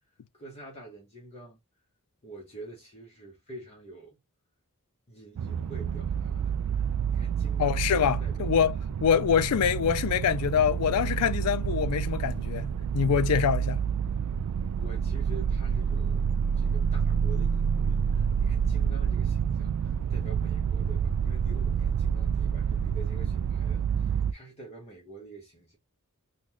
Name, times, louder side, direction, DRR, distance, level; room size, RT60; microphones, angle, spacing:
voice 1, 0.3-1.6 2.2-4.2 5.1-8.5 14.7-25.8, right 2 dB, 30° left, 1.0 m, -47 dB
sound 1, 5.4-24.3, right 7 dB, 90° right, 0.3 m, -28 dB
voice 2, 7.6-13.8, left 8 dB, 85° left, 0.4 m, -25 dB
3.8 x 2.3 x 2.9 m
head